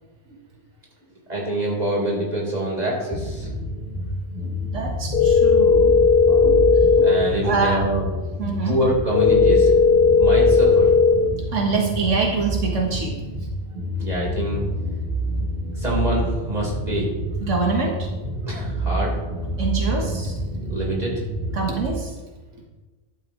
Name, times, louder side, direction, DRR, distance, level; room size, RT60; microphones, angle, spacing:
voice 1, 1.3-3.5 6.3-8.4 8.6-9.8 10.2-10.9 14.0-14.6 15.7-17.1 18.5-19.2 20.7-21.2, right 1 dB, 35° right, -4 dB, 4.2 m, -25 dB
sound 1, 3.1-21.9, right 1 dB, 5° left, 4.1 m, -28 dB
voice 2, 4.4-5.9 7.4-7.8 8.4-8.8 11.5-13.2 17.4-18.1 19.6-20.3 21.5-22.2, right 4 dB, 90° right, 0 dB, 1.8 m, -25 dB
sound 2, 5.1-7.1 9.1-11.1, left 5 dB, 30° left, 2.5 m, -15 dB
13.0 x 12.0 x 3.1 m, 1.2 s
omnidirectional pair, 1.2 m